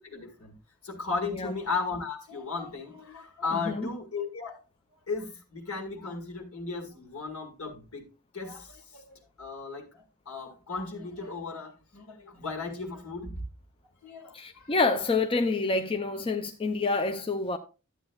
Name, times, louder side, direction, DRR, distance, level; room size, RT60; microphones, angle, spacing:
voice 1, 0.0-0.6 0.8-4.6 5.1-8.1 8.3-13.4 14.0-14.7, left 4 dB, 70° left, 2.1 m, -36 dB
voice 2, 3.5-3.9 14.3-17.6, left 3 dB, 25° left, 0.5 m, -28 dB
12.0 x 8.6 x 2.3 m
head